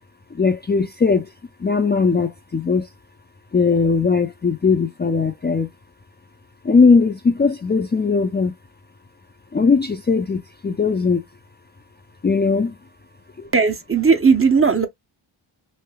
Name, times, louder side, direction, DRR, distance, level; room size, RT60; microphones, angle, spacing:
voice 1, 0.3-1.3 1.6-2.9 3.5-5.7 6.6-8.5 9.5-11.2 12.2-12.8 13.4-13.5, left 4 dB, 25° left, 0.4 m, -19 dB
voice 2, 13.5-14.9, right 5 dB, 25° right, 0.7 m, -16 dB
3.1 x 2.7 x 2.2 m
cardioid pair, 60°, 48 cm